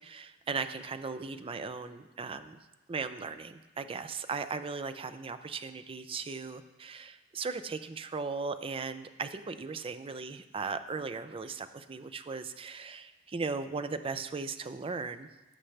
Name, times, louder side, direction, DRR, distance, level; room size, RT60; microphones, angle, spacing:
voice 1, 0.0-2.6 2.9-15.3, right 4 dB, 25° right, 10 dB, 0.4 m, -37 dB
16.0 x 6.5 x 3.3 m, 1.1 s
head